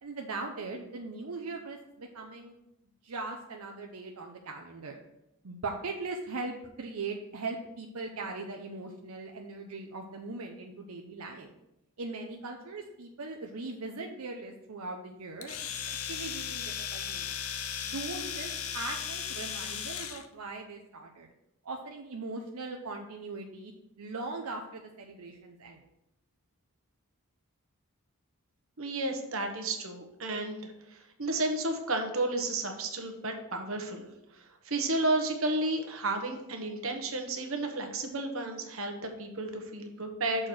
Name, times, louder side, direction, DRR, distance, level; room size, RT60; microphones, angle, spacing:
voice 1, 0.0-2.6 3.0-5.0 5.4-11.5 12.0-15.6 15.9-17.3 17.8-21.3 21.6-23.7 24.0-25.8, right 3 dB, 85° right, 2 dB, 0.7 m, -40 dB
Domestic sounds home sounds, 15.4-20.3, left 8 dB, 75° left, 0.7 m, -36 dB
voice 2, 28.8-34.1 34.6-40.5, right 2 dB, 65° right, 4 dB, 1.1 m, -32 dB
6.5 x 4.4 x 6.3 m, 0.87 s
head